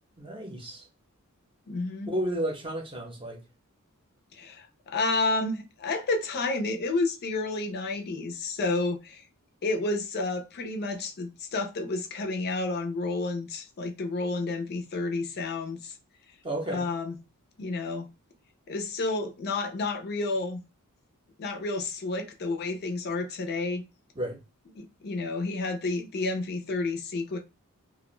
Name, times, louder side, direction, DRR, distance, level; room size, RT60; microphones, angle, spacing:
voice 1, 0.2-0.9 2.1-3.4 16.4-16.9 24.2-24.4, right 1 dB, 25° right, 0.7 m, -32 dB
voice 2, 1.7-2.1 4.3-9.2 9.6-16.0 16.7-17.1 17.6-18.1 18.7-20.6 21.4-23.8 24.8-27.4, left 3 dB, 45° left, 0.4 m, -30 dB
2.5 x 2.1 x 3.0 m
head